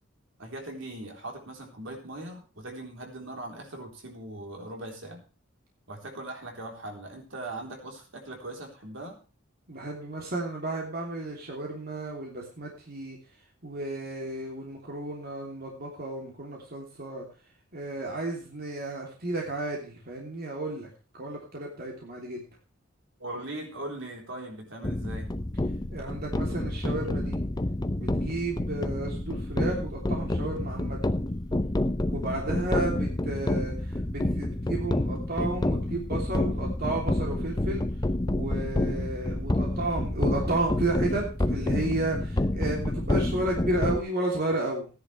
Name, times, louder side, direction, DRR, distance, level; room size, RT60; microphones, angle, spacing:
voice 1, 0.4-5.2 5.9-9.2 23.2-25.3, right 1 dB, 70° right, 2 dB, 3.8 m, -40 dB
voice 2, 9.7-13.2 13.6-17.3 17.7-20.9 21.1-22.5 25.9-27.4 28.0-31.0 32.1-37.8 38.3-44.9, right 2 dB, 50° right, -1 dB, 3.2 m, -32 dB
sound 1, 24.8-44.0, left 1 dB, 20° left, 0.7 m, -29 dB
16.5 x 10.5 x 3.4 m, 0.34 s
head